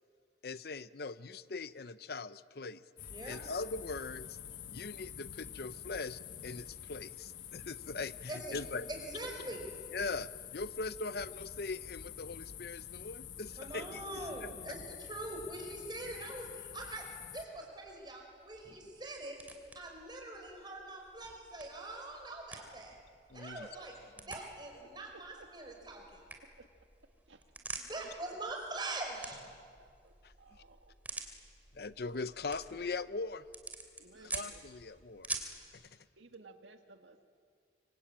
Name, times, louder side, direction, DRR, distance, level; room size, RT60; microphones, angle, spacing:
voice 1, 0.4-2.8 3.3-4.4 4.7-8.9 9.9-14.5 23.3-23.7 30.2-30.6 31.7-33.4 34.3-35.3 35.7-35.9, left 3 dB, 55° left, 14 dB, 0.6 m, -41 dB
sound 1, 3.0-17.5, left 9 dB, 85° left, 1.3 m, -47 dB
voice 2, 3.1-3.4 8.3-8.6 8.9-9.6 13.6-19.4 19.8-23.0 23.3-26.0 27.8-29.4 34.1-34.3, right 2 dB, 25° right, 2 dB, 5.2 m, -43 dB
sound 2, 17.5-35.7, right 2 dB, 10° right, 2.6 m, -49 dB
voice 3, 25.1-25.7 26.4-26.6 27.3-27.4 29.8-30.9 34.0-34.6 36.2-37.3, right 3 dB, 90° right, 6 dB, 1.8 m, -57 dB
25.5 x 25.0 x 8.9 m, 2.2 s
head